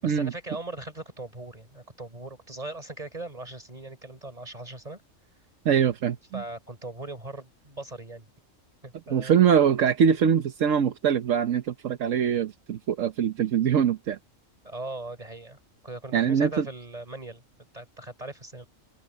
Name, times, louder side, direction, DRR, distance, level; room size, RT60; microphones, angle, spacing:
voice 1, 0.0-5.0 6.3-8.3 8.8-9.4 14.6-15.6 15.8-17.4 17.7-18.7, right 2 dB, 30° right, 4.0 m, -39 dB
voice 2, 5.6-6.4 9.1-14.2 16.1-16.7, right 8 dB, 80° right, 1.3 m, -23 dB
omnidirectional pair, 1.3 m